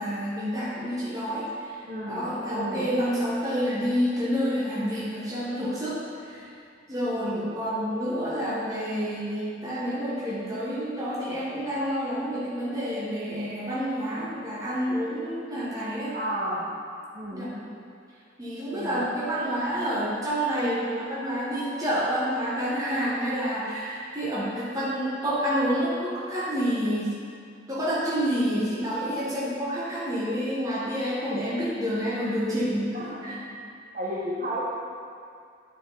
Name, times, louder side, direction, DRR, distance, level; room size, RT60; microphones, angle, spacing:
voice 1, 0.0-6.5 6.9-16.2 17.3-17.5 18.4-27.2 27.7-33.4, equal, 20° right, -7 dB, 1.0 m, -28 dB
voice 2, 1.8-2.9 7.1-7.5 16.1-16.7 17.1-17.7 18.7-19.0 32.9-33.4 33.9-34.6, equal, 45° right, -4 dB, 1.2 m, -33 dB
9.3 x 4.6 x 3.9 m, 2.4 s
head